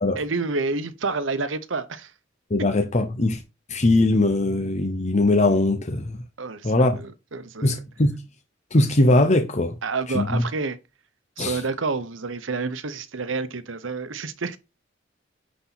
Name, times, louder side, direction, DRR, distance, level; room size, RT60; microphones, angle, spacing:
voice 1, 0.1-2.1 6.4-7.8 9.8-10.8 11.4-14.6, right 4 dB, 85° right, 0.9 m, -29 dB
voice 2, 2.5-3.4 3.7-6.2 6.6-7.0 7.6-8.1 8.7-9.7 10.1-10.4 11.4-11.6, left 2 dB, 40° left, 1.0 m, -20 dB
9.9 x 4.2 x 4.1 m
head